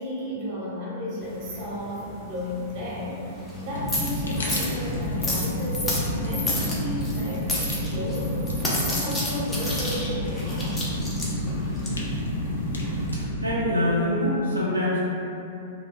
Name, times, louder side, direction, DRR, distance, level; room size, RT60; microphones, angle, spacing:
voice 1, 0.0-10.9, left 1 dB, 40° right, -7 dB, 0.9 m, -34 dB
sound 1, 1.2-13.2, left 1 dB, 10° left, 0.5 m, -32 dB
Fire, 3.7-13.5, left 1 dB, 70° left, 0.4 m, -29 dB
voice 2, 13.1-15.0, left 1 dB, 85° right, -8 dB, 0.6 m, -25 dB
2.3 x 2.2 x 3.3 m, 2.7 s
figure-of-eight pair, 105°, 0 cm